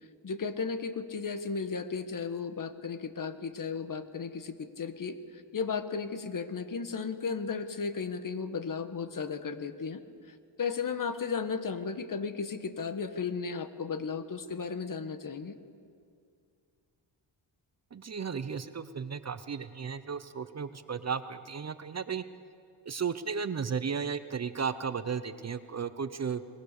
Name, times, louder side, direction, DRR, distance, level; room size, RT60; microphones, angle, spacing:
voice 1, 0.2-5.2 5.5-10.0 10.6-15.5, left 5 dB, 45° left, 10 dB, 1.4 m, -34 dB
voice 2, 17.9-22.2 22.9-26.4, right 6 dB, 35° right, 12 dB, 0.9 m, -34 dB
22.0 x 21.5 x 6.7 m, 2.3 s
cardioid pair, 90°, 47 cm